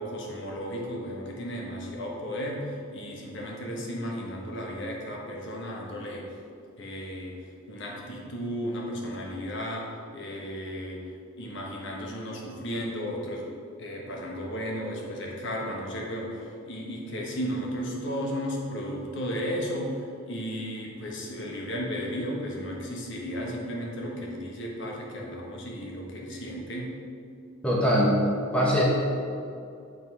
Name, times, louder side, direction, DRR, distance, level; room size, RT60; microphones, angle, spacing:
voice 1, 0.0-6.3 6.8-11.0 11.4-13.5 13.8-20.0 20.3-27.0, equal, 55° left, -2 dB, 1.2 m, -34 dB
voice 2, 27.6-28.1 28.5-28.8, equal, 5° left, -5 dB, 0.9 m, -22 dB
7.7 x 4.1 x 4.7 m, 2.5 s
head